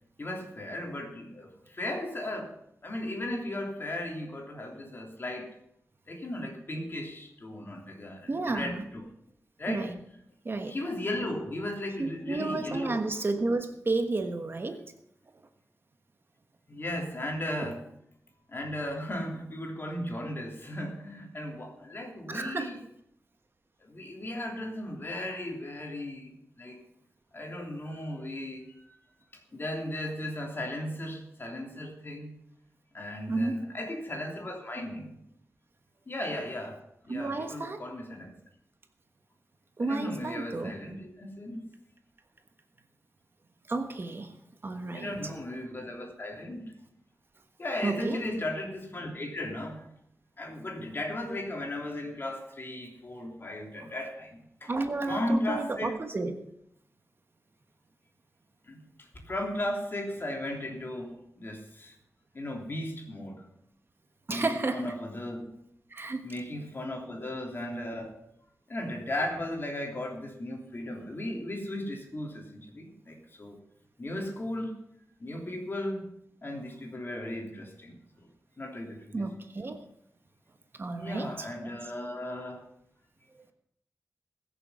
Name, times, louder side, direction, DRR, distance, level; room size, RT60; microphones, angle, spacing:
voice 1, 0.2-2.5 2.8-5.5 6.1-9.1 9.6-9.9 10.7-13.0 16.7-17.9 18.5-22.8 23.8-26.8 27.3-28.9 29.3-32.3 32.9-35.2 36.1-38.3 39.8-41.6 44.9-46.7 47.6-49.9 50.4-54.7 55.1-55.9 58.6-62.0 62.3-63.4 64.3-65.5 66.2-68.2 68.7-73.6 74.0-74.7 75.2-76.0 76.4-78.3 78.6-79.2 81.0-82.6, left 1 dB, 45° left, 1 dB, 3.3 m, -36 dB
voice 2, 8.3-8.8 9.7-10.0 10.4-10.7 12.0-14.8 17.6-17.7 22.3-22.7 33.3-33.6 37.1-37.8 39.8-40.7 43.7-44.3 44.6-45.1 47.8-48.2 53.8-53.9 54.6-56.3 64.3-64.9 65.9-66.3 79.1-79.8 80.8-81.7, right 3 dB, 45° right, 6 dB, 1.3 m, -32 dB
21.0 x 7.0 x 5.7 m, 0.73 s
wide cardioid pair, 85°, 5 cm